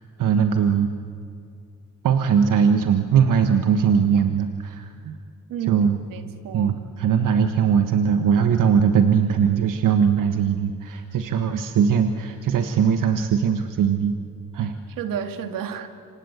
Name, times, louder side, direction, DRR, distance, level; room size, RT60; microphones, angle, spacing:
voice 1, 0.2-0.9 2.0-5.2 5.7-6.0 6.5-14.1 14.5-14.7, right 7 dB, 70° right, 7 dB, 1.5 m, -20 dB
voice 2, 5.5-5.8 6.1-6.7 15.0-15.9, right 8 dB, 90° right, 6 dB, 2.2 m, -31 dB
27.5 x 25.5 x 8.2 m, 2.4 s
cardioid pair, 80°, 33 cm